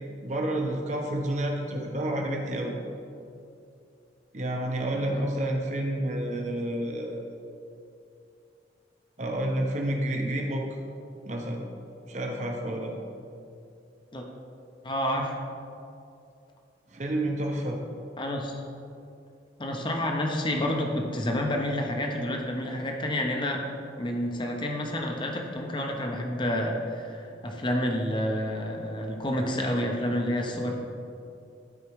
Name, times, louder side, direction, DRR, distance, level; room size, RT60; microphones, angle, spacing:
voice 1, 0.2-2.7 4.3-7.4 9.2-10.7 11.2-11.6 12.1-12.9 16.9-17.8, right 1 dB, 40° right, 1 dB, 0.9 m, -29 dB
voice 2, 14.8-15.4 18.2-18.6 19.6-23.6 24.0-30.8, left 1 dB, 25° left, 1 dB, 0.8 m, -29 dB
12.0 x 4.8 x 3.2 m, 2.6 s
head